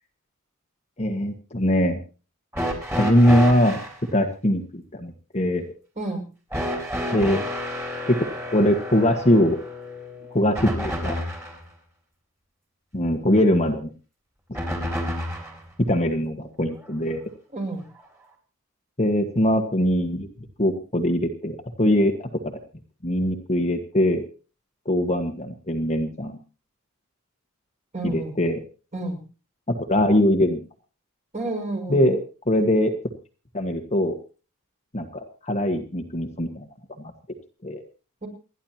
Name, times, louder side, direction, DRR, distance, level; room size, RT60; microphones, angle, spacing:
voice 1, 1.0-2.0 3.0-3.8 4.1-5.6 7.1-7.4 8.1-9.6 10.3-11.2 12.9-13.9 14.5-14.6 15.9-17.2 19.0-20.3 20.6-22.3 23.0-24.2 24.8-26.4 28.0-28.6 29.7-30.6 31.9-32.2 32.5-32.9 33.5-34.1 34.9-36.7 37.0-37.1 37.6-37.8, left 1 dB, 30° left, 4 dB, 1.5 m, -22 dB
sound 1, 2.5-4.0 6.5-11.6 14.5-15.6 16.8-16.9 18.0-18.1, equal, 10° right, 4.6 m, -30 dB
voice 2, 17.5-17.8 27.9-28.3 28.9-29.2 31.3-32.0 38.2-38.3, right 2 dB, 35° right, 1 dB, 6.1 m, -30 dB
29.0 x 11.0 x 2.9 m, 0.36 s
head